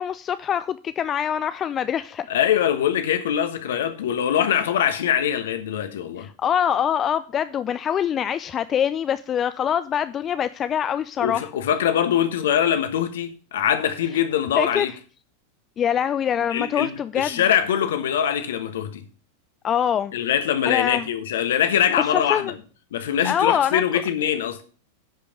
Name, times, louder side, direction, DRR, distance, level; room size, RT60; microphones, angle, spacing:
voice 1, 0.0-2.3 6.2-11.5 14.6-14.9 15.8-17.4 19.6-20.1 20.7-21.1 22.1-22.5 23.2-23.8, left 9 dB, 25° left, 0.4 m, -24 dB
voice 2, 2.3-6.3 11.2-14.9 16.5-16.9 17.1-19.0 20.1-22.6 22.9-24.6, left 9 dB, 60° left, 1.3 m, -23 dB
11.0 x 5.2 x 6.6 m
figure-of-eight pair, 90°, 0 cm